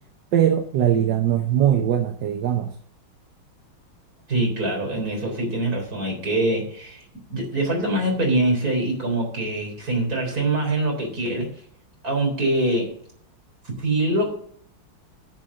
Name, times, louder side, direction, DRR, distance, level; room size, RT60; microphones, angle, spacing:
voice 1, 0.3-2.8, right 10 dB, 65° right, 5 dB, 1.5 m, -21 dB
voice 2, 4.3-7.0 7.3-11.5 12.0-12.9 13.8-14.3, right 1 dB, 45° right, 0 dB, 4.2 m, -24 dB
10.5 x 5.8 x 7.5 m, 0.63 s
omnidirectional pair, 2.2 m